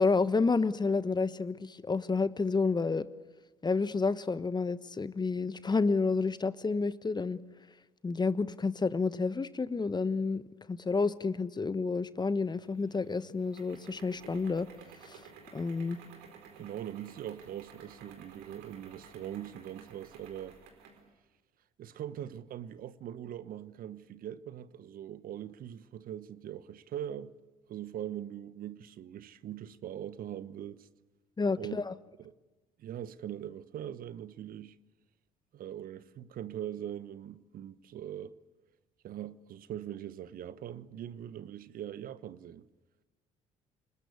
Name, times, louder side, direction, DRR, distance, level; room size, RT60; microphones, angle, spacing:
voice 1, 0.0-3.1 3.6-7.4 8.0-10.4 10.7-14.7 15.0-15.2 15.5-16.0 31.4-31.9, left 4 dB, 25° left, 1.3 m, -30 dB
sound 1, 12.3-21.1, right 6 dB, 70° right, 4.6 m, -54 dB
voice 2, 16.6-20.6 21.8-27.3 27.7-30.9 31.6-31.8 32.2-32.3 32.8-34.8 35.5-38.4 39.0-42.7, right 11 dB, 55° right, 1.2 m, -41 dB
29.0 x 20.0 x 8.4 m
hypercardioid pair, 55°, 18 cm